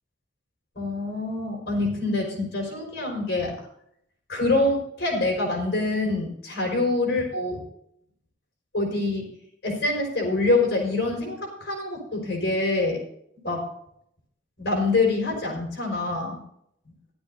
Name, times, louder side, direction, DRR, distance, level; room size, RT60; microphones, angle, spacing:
voice 1, 0.7-3.5 4.3-7.6 8.7-9.3 9.6-13.0 13.4-13.7 14.6-16.4, left 2 dB, 60° left, -1 dB, 5.2 m, -25 dB
15.5 x 12.0 x 2.7 m, 0.71 s
head